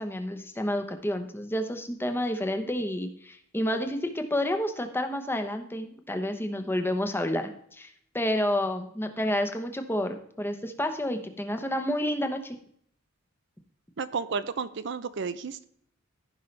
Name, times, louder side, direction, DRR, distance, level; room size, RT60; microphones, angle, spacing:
voice 1, 0.0-12.6, left 1 dB, 10° left, 6 dB, 0.9 m, -30 dB
voice 2, 14.0-15.7, right 5 dB, 60° right, 13 dB, 0.5 m, -32 dB
14.5 x 5.4 x 3.3 m, 0.65 s
head